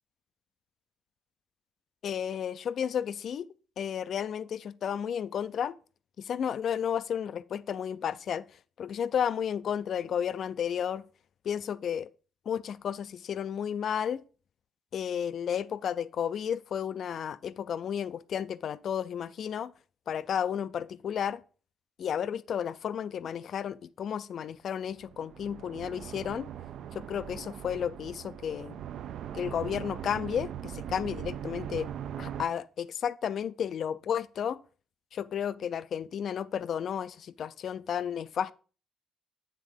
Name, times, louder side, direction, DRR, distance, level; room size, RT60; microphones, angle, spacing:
voice 1, 2.0-3.5 3.8-5.8 6.2-8.4 8.8-11.0 11.4-12.1 12.5-14.2 14.9-19.7 20.1-21.4 22.0-26.5 26.9-28.8 29.3-31.9 32.2-34.6 35.1-38.5, left 8 dB, 50° left, 0.3 m, -32 dB
sound 1, 24.9-32.5, right 10 dB, 65° right, 0.4 m, -40 dB
9.2 x 3.6 x 5.1 m
cardioid pair, 145°, 0 cm